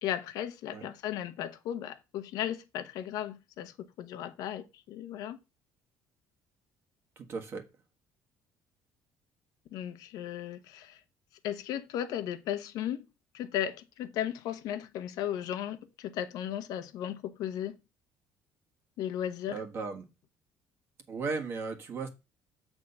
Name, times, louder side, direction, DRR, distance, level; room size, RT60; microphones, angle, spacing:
voice 1, 0.0-5.4 9.7-11.0 11.4-13.0 13.3-17.7 19.0-19.6, left 10 dB, 70° left, 1.0 m, -36 dB
voice 2, 7.2-7.6 19.5-20.1 21.1-22.1, right 4 dB, 35° right, 1.5 m, -36 dB
8.4 x 3.6 x 6.7 m
cardioid pair, 170°, 7 cm